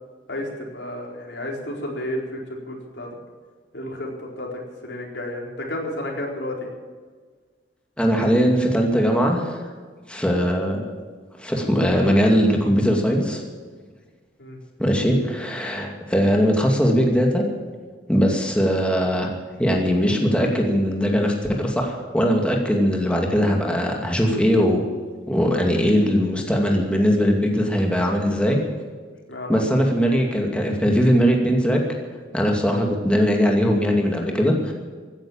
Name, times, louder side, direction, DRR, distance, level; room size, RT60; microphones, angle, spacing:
voice 1, 0.3-3.1 3.7-6.7 14.4-14.6 29.3-29.6, left 1 dB, 85° left, -1 dB, 4.4 m, -32 dB
voice 2, 8.0-9.7 10.1-10.8 11.4-13.4 14.8-17.4 18.1-19.3 19.6-24.8 25.3-28.6 29.5-31.8 32.3-34.7, equal, 5° left, 1 dB, 2.4 m, -20 dB
16.0 x 10.0 x 8.8 m, 1.5 s
head